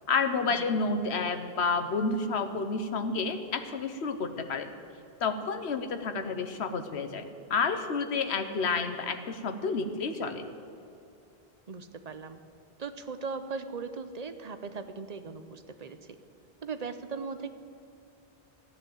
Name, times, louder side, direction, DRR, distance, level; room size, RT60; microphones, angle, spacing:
voice 1, 0.1-4.7 5.2-10.5, left 4 dB, 90° left, 8 dB, 1.2 m, -30 dB
voice 2, 11.7-12.4 12.8-16.0 16.6-17.5, right 4 dB, 40° right, 9 dB, 0.8 m, -38 dB
14.0 x 10.0 x 7.7 m, 2.7 s
omnidirectional pair, 1.1 m